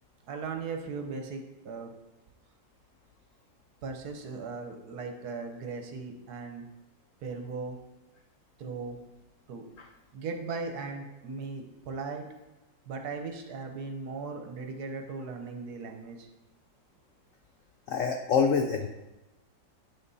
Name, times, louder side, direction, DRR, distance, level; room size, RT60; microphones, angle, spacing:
voice 1, 0.3-1.9 3.8-6.6 7.2-7.8 8.6-9.0 9.5-9.6 10.1-12.3 12.9-16.3, right 4 dB, 60° right, 4 dB, 1.2 m, -38 dB
voice 2, 17.9-18.9, left 6 dB, 85° left, 5 dB, 0.7 m, -25 dB
8.6 x 5.8 x 4.1 m, 1.0 s
omnidirectional pair, 2.0 m